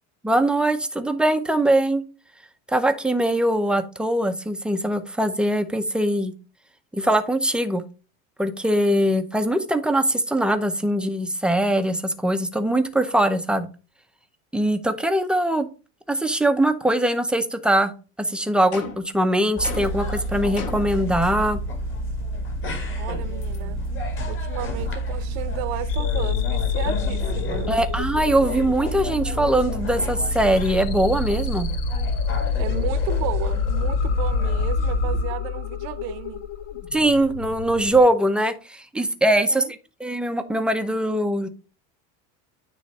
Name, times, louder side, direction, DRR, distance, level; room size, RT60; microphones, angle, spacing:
voice 1, 0.2-2.0 2.7-6.3 6.9-7.8 8.4-13.7 14.5-15.7 16.1-17.9 18.2-21.6 27.7-31.7 36.9-39.6 40.0-41.5, right 1 dB, ahead, 0.6 m, -22 dB
sound 1, 18.7-19.2 19.6-20.1 20.6-21.0, left 5 dB, 55° left, 2.5 m, -35 dB
sound 2, 19.6-35.2, right 1 dB, 30° left, 1.9 m, -28 dB
voice 2, 23.0-23.8 24.3-27.7 32.6-36.4 39.2-39.7, right 12 dB, 70° right, 0.9 m, -33 dB
sound 3, 25.9-38.0, left 11 dB, 80° left, 1.1 m, -29 dB
9.3 x 3.1 x 5.4 m
supercardioid pair, 135°, 39 cm